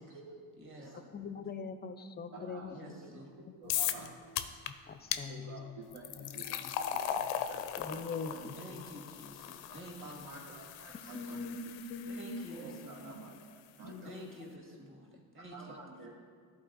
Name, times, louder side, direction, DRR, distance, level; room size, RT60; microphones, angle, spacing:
voice 1, 0.0-0.4 0.8-0.9 2.3-4.1 5.3-6.6 6.9-7.6 7.9-8.1 8.3-8.5 10.0-11.4 12.5-14.2 15.5-16.1, right 3 dB, 65° right, -4 dB, 1.2 m, -50 dB
voice 2, 0.6-1.1 2.7-3.4 8.5-10.4 12.1-13.1 14.0-15.7, right 1 dB, 25° right, 0 dB, 2.1 m, -50 dB
voice 3, 1.1-3.0 4.7-5.8 6.2-6.7 7.8-8.9 11.1-12.6 13.8-14.3, left 4 dB, 25° left, 10 dB, 0.5 m, -42 dB
sound 1, 3.7-4.1 4.4-4.7 5.1-5.2 5.9-13.0, left 10 dB, 85° left, 0.5 m, -38 dB
11.5 x 4.1 x 4.0 m, 2.1 s
supercardioid pair, 75°, 45 cm